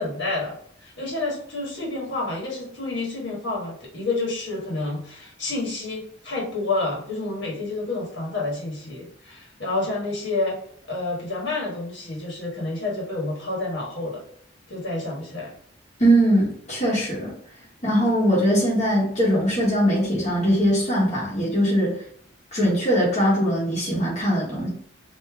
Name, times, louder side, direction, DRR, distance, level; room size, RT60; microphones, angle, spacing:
voice 1, 0.0-10.6 10.9-14.2 14.7-15.5, left 2 dB, 70° left, -3 dB, 1.5 m, -29 dB
voice 2, 16.0-17.3 17.8-22.0 22.5-24.7, equal, 35° left, -6 dB, 1.1 m, -21 dB
3.3 x 2.7 x 3.4 m, 0.62 s
head